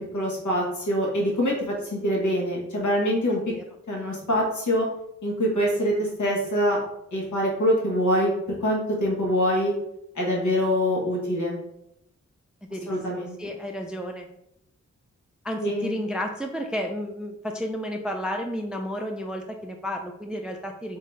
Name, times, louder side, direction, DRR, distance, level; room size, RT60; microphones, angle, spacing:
voice 1, 0.1-1.5 1.8-3.4 3.9-4.9 5.2-6.8 7.1-8.3 8.6-9.7 10.1-11.6 12.9-13.4 15.6-16.0, equal, 80° left, -2 dB, 1.5 m, -24 dB
voice 2, 12.6-14.3 15.4-21.0, equal, 5° right, 3 dB, 0.4 m, -32 dB
4.2 x 3.8 x 3.2 m, 0.81 s
wide cardioid pair, 85°, 30 cm